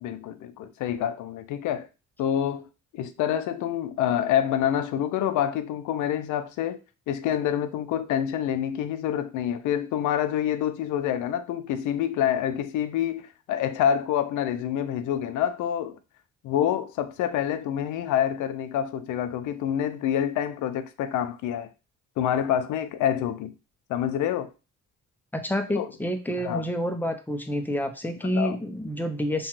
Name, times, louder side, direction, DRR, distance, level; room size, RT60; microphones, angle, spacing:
voice 1, 0.0-1.9 2.2-2.6 2.9-6.8 7.1-16.0 16.4-21.7 22.2-23.5 23.9-24.5 25.8-25.9 26.4-26.7 28.2-28.6, left 10 dB, 80° left, 0.5 m, -27 dB
voice 2, 25.3-29.5, equal, 5° left, 0.5 m, -28 dB
2.9 x 2.3 x 3.0 m
cardioid pair, 90°, 30 cm